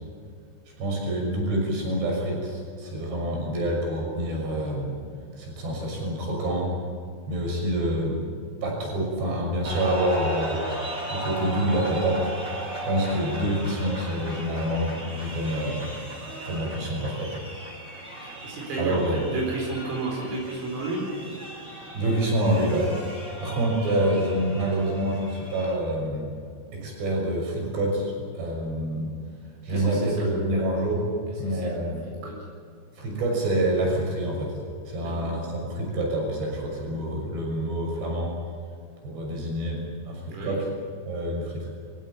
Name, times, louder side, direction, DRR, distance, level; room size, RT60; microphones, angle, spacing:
voice 1, 0.8-5.0 5.4-6.7 7.3-8.3 8.6-10.6 11.1-12.3 12.8-15.9 16.4-17.4 18.8-19.2 21.9-22.9 23.4-26.3 26.7-29.1 29.6-31.0 31.4-32.1 33.0-34.5 34.9-38.3 39.0-39.8 40.0-40.7 41.1-41.7, right 1 dB, 55° right, 0 dB, 8.4 m, -27 dB
sound 1, 9.6-25.7, right 1 dB, 20° right, 7.1 m, -37 dB
voice 2, 18.2-19.1 19.3-21.1 29.7-30.4 31.5-31.8 32.2-32.3 35.0-35.3 40.3-40.6, right 3 dB, 80° right, -2 dB, 7.1 m, -32 dB
26.0 x 16.0 x 9.4 m, 2.2 s
omnidirectional pair, 5.8 m